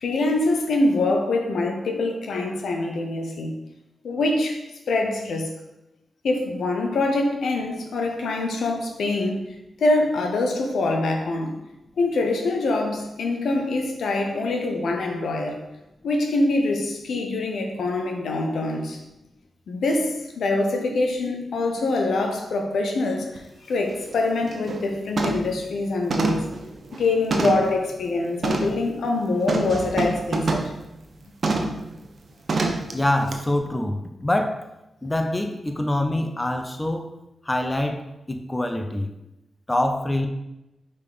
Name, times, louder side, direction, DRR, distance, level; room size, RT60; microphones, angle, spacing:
voice 1, 0.0-3.6 4.0-4.6 4.9-5.5 6.2-9.5 9.8-11.6 12.0-15.6 16.0-19.0 19.7-26.5 26.9-30.7, left 2 dB, 75° left, 3 dB, 0.9 m, -24 dB
sound 1, 23.4-23.5 23.9-24.1 24.5-24.8 25.2-25.6 26.1-27.8 28.4-28.8 29.5-30.8 31.4-31.8 32.5-32.9 33.3-33.4, right 3 dB, 60° right, 0.9 m, -26 dB
voice 2, 32.9-34.6 35.0-37.1 37.4-39.1 39.7-40.3, left 1 dB, 20° left, 5 dB, 0.8 m, -25 dB
5.3 x 4.3 x 5.1 m, 0.93 s
supercardioid pair, 40°, 0 cm